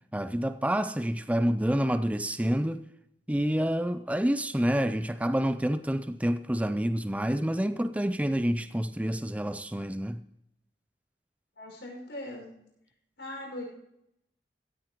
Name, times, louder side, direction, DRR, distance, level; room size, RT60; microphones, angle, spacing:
voice 1, 0.1-2.8 3.3-10.2, equal, 10° right, 0.5 m, -28 dB
voice 2, 11.6-12.5 13.2-13.6, left 1 dB, 85° left, 5.8 m, -40 dB
16.5 x 14.0 x 3.1 m
head